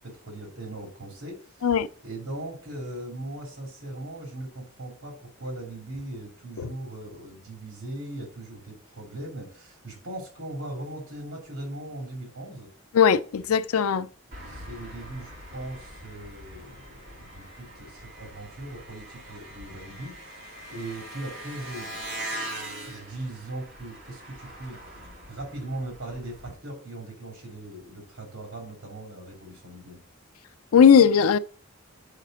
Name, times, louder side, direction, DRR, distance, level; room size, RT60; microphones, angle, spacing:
voice 1, 0.0-12.7 14.4-20.2 20.7-22.0 22.9-24.8 25.3-30.0, right 1 dB, 80° right, 2.6 m, -39 dB
voice 2, 12.9-14.1 30.7-31.4, left 7 dB, 90° left, 0.4 m, -18 dB
Engine, 14.3-26.5, right 1 dB, 50° right, 2.3 m, -42 dB
6.6 x 4.9 x 6.3 m
head